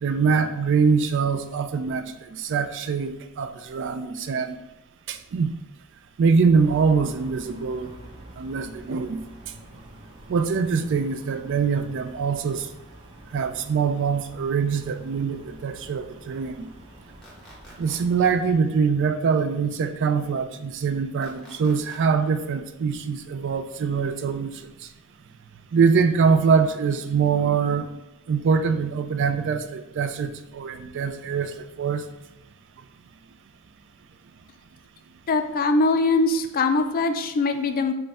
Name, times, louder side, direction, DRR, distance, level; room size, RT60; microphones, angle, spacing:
voice 1, 0.0-2.0 2.3-4.6 5.1-5.5 6.2-7.9 8.4-9.2 10.3-12.7 13.3-16.7 17.8-24.7 25.7-27.9 28.3-32.0, right 5 dB, 55° right, 8 dB, 0.4 m, -23 dB
sound 1, 6.5-18.5, right 1 dB, 20° right, 0.9 m, -47 dB
sound 2, 17.2-18.0 21.2-22.0, equal, 5° left, 1.1 m, -49 dB
voice 2, 35.3-37.9, left 3 dB, 40° left, 7 dB, 0.4 m, -22 dB
5.5 x 2.2 x 4.1 m, 0.97 s
head